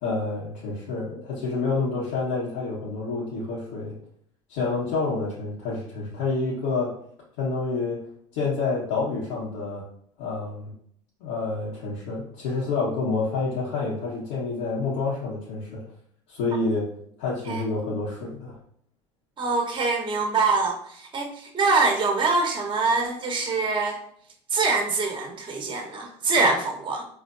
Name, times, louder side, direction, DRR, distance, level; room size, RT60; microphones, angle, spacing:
voice 1, 0.0-3.9 4.5-7.0 7.4-8.0 8.3-9.9 10.2-10.7 11.2-15.8 16.3-16.9 17.2-18.6, left 3 dB, 80° left, -8 dB, 1.4 m, -28 dB
voice 2, 19.4-24.0 24.5-27.0, right 3 dB, 35° right, 2 dB, 1.1 m, -24 dB
4.4 x 3.1 x 2.6 m, 0.66 s
hypercardioid pair, 80°, 15 cm